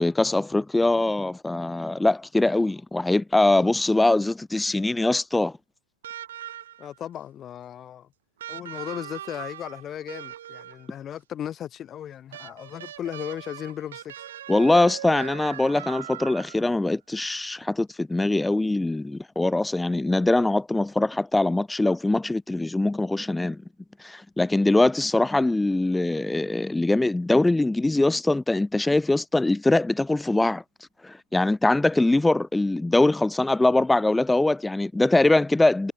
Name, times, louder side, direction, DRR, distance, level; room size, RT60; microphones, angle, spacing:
voice 1, 0.0-5.5 14.5-23.6 24.0-30.6 31.0-35.9, left 2 dB, 5° left, 0.3 m, -22 dB
sound 1, 6.0-7.0 8.4-11.0 12.3-16.8 18.1-18.2, right 11 dB, 80° right, 4.1 m, -40 dB
voice 2, 6.8-8.1 8.5-14.3, left 10 dB, 20° left, 5.4 m, -36 dB
supercardioid pair, 155°, 0 cm